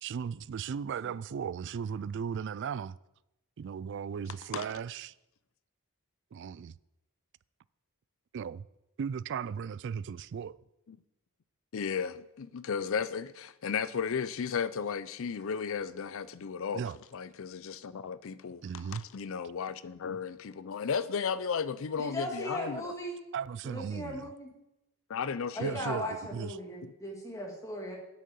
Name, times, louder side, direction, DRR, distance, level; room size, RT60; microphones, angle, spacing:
voice 1, 0.0-3.0 3.6-5.1 6.3-6.7 8.3-8.6 9.0-10.6 16.7-17.0 18.6-19.0 23.3-24.3 25.6-26.6, right 7 dB, 55° right, 0.3 m, -36 dB
voice 2, 11.7-16.8 17.1-22.9 25.1-26.0, left 6 dB, 60° left, 0.4 m, -34 dB
voice 3, 22.0-23.2 23.6-24.5 25.5-28.0, equal, 15° left, 2.1 m, -38 dB
9.1 x 6.5 x 8.4 m
head